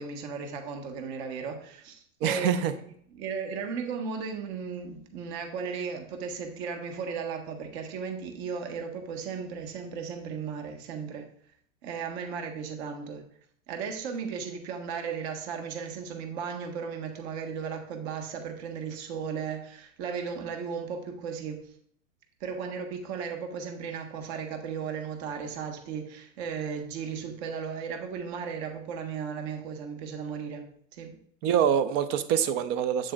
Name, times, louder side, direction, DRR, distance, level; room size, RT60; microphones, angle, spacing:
voice 1, 0.0-2.7 3.1-11.3 11.8-13.2 13.7-21.7 22.4-31.2, right 6 dB, 50° right, 4 dB, 1.6 m, -36 dB
voice 2, 2.2-2.7 31.4-33.1, right 8 dB, 25° right, 12 dB, 0.4 m, -25 dB
7.9 x 7.3 x 2.5 m, 0.64 s
hypercardioid pair, 130°, 41 cm